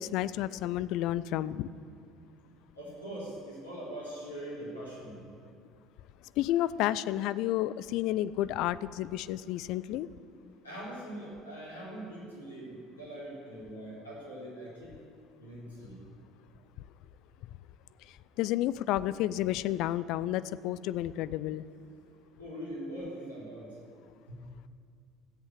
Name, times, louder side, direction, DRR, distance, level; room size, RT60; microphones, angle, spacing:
voice 1, 0.0-1.7 6.4-10.1 18.4-21.7, left 13 dB, 55° left, 17 dB, 0.3 m, -31 dB
voice 2, 2.8-5.2 10.6-14.9 15.4-16.0 22.4-23.7 24.3-24.4, right 1 dB, 85° left, -7 dB, 3.7 m, -42 dB
13.5 x 8.1 x 7.3 m, 2.3 s
figure-of-eight pair, 60°, 0 cm